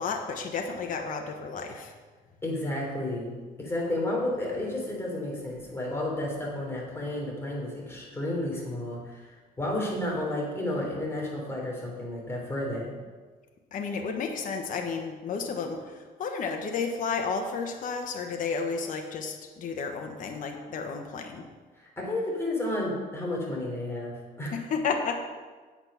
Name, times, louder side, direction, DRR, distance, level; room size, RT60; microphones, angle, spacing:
voice 1, 0.0-1.9 13.7-21.4 24.5-25.2, left 5 dB, 50° left, 3 dB, 1.2 m, -32 dB
voice 2, 2.4-3.3 3.6-12.9 21.8-24.6, left 1 dB, 15° left, -3 dB, 3.8 m, -32 dB
8.8 x 8.2 x 5.8 m, 1.4 s
cardioid pair, 110°, 17 cm